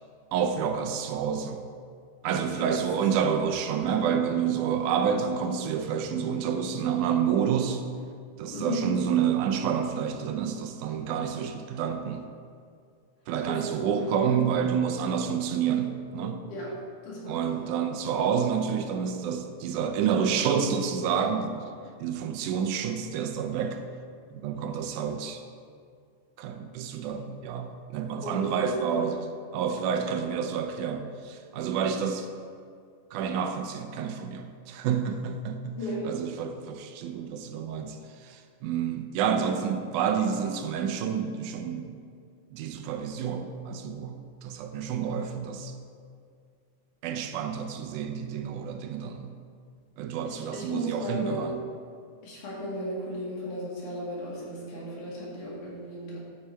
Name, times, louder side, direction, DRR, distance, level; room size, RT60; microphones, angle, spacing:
voice 1, 0.3-1.6 2.2-7.8 8.4-12.3 13.3-16.4 17.3-21.7 22.0-23.9 24.3-25.4 26.4-29.2 29.5-32.3 33.1-35.8 36.1-42.0 42.5-45.7 47.0-49.4 50.0-51.6, right 7 dB, 85° right, 7 dB, 2.2 m, -29 dB
voice 2, 8.5-8.9 13.4-14.4 16.5-16.8 17.0-17.7 28.2-29.2 29.9-30.1 35.7-36.1 50.2-51.5 52.2-56.2, right 1 dB, 75° left, -5 dB, 3.7 m, -35 dB
13.5 x 5.8 x 4.5 m, 2.2 s
omnidirectional pair, 3.5 m